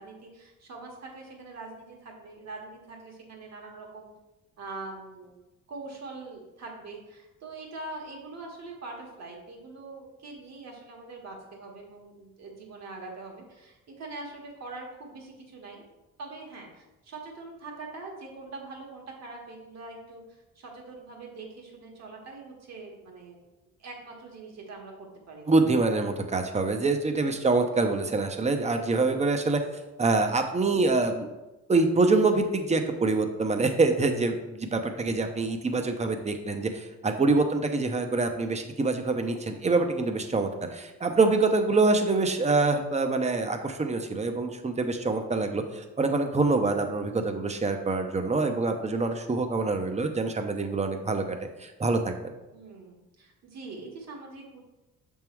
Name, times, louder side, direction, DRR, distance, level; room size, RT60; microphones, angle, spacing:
voice 1, 0.0-4.1 4.6-5.4 5.7-15.8 16.2-23.4 23.8-25.5 27.2-27.5 40.8-40.9 52.5-54.6, right 3 dB, 60° right, 0 dB, 1.8 m, -43 dB
voice 2, 25.5-29.6 30.0-31.3 31.7-52.3, right 3 dB, 20° right, 6 dB, 0.8 m, -25 dB
6.5 x 3.7 x 4.6 m, 1.0 s
cardioid pair, 90°, 30 cm